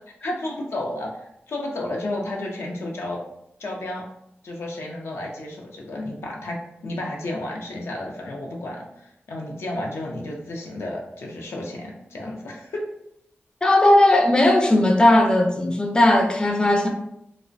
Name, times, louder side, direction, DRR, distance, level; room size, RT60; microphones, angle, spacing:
voice 1, 0.2-3.2 3.6-4.1 4.4-12.9, left 1 dB, 85° left, -1 dB, 0.4 m, -32 dB
voice 2, 13.6-16.9, left 1 dB, 20° left, 2 dB, 0.4 m, -17 dB
2.4 x 2.0 x 2.5 m, 0.79 s
cardioid pair, 60°, 4 cm